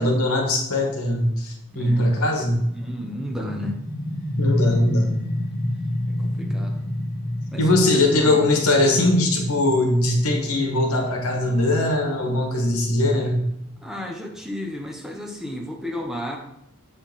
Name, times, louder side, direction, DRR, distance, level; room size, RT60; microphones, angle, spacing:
voice 1, 0.0-2.6 4.4-5.1 7.6-13.4, left 1 dB, 75° left, 1 dB, 1.5 m, -21 dB
voice 2, 1.7-2.1 2.7-3.8 4.8-5.2 6.2-6.8 7.5-8.4 13.8-16.4, left 1 dB, ahead, 1 dB, 0.8 m, -33 dB
sound 1, 2.5-14.0, left 1 dB, 45° left, 1.6 m, -29 dB
7.8 x 4.1 x 4.0 m, 0.77 s
head